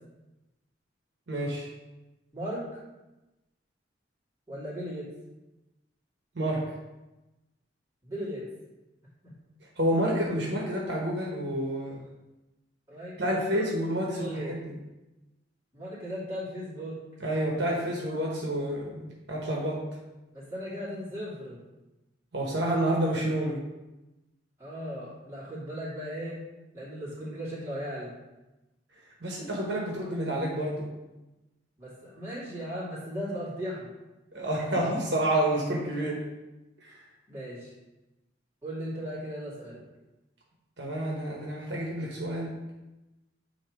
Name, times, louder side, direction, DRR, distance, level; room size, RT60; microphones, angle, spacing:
voice 1, 1.3-1.7 6.3-6.6 9.8-12.0 13.2-14.7 17.2-19.8 22.3-23.6 29.2-30.9 34.3-36.2 36.8-37.0 40.8-42.6, right 1 dB, 65° right, -3 dB, 1.2 m, -29 dB
voice 2, 2.3-2.8 4.5-5.1 8.0-8.5 9.2-9.3 12.9-13.7 14.1-14.6 15.7-17.0 20.3-21.6 24.6-26.4 26.7-28.1 31.8-33.9 37.3-37.7 38.6-39.8, equal, 15° right, -9 dB, 2.4 m, -37 dB
8.7 x 3.0 x 4.8 m, 1.0 s
head